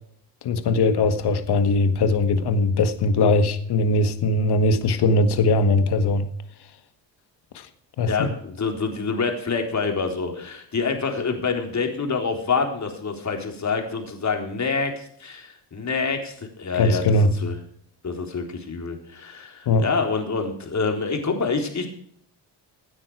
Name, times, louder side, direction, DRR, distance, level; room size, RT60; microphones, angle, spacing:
voice 1, 0.4-6.3 8.0-8.3 16.8-17.3 19.7-19.8, left 2 dB, 60° left, 1.8 m, -20 dB
voice 2, 8.1-17.6 18.0-21.9, left 4 dB, 40° left, 3.9 m, -27 dB
16.5 x 9.6 x 4.8 m
cardioid pair, 85°, 44 cm